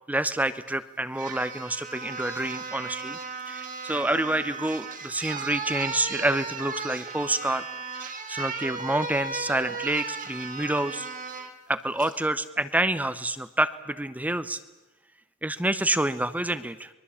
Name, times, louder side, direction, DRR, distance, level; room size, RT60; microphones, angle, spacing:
voice 1, 0.1-3.2 3.5-7.6 8.3-11.1 11.7-14.6 15.4-16.9, right 1 dB, 5° right, 13 dB, 0.7 m, -28 dB
sound 1, 0.7-0.8 1.2-11.5 12.0-12.2, right 4 dB, 35° right, 2.3 m, -36 dB
24.0 x 22.0 x 8.5 m, 1.1 s
head